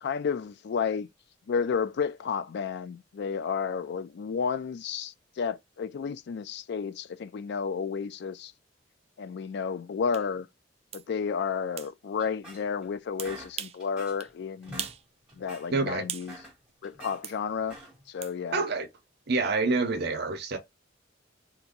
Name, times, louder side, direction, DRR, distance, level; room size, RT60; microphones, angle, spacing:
voice 1, 0.0-1.1 1.5-8.5 9.2-10.5 10.9-14.9 15.4-16.4 16.8-17.8 18.1-18.6 20.0-20.2, left 6 dB, 60° left, 0.4 m, -32 dB
sound 1, 10.1-10.3 10.9-11.1 11.8-11.9 13.2-13.8 14.2-14.3 14.8-15.1 15.4-16.3 17.2-17.4 18.2-18.4, right 10 dB, 35° right, 0.3 m, -38 dB
sound 2, 12.2-12.9 13.2-14.3 14.6-15.0 15.3-15.7 16.1-17.2 17.6-18.1, right 1 dB, 5° right, 1.4 m, -46 dB
voice 2, 15.7-16.1 18.5-18.9 19.3-20.6, right 3 dB, 60° right, 0.7 m, -27 dB
2.9 x 2.6 x 3.7 m
head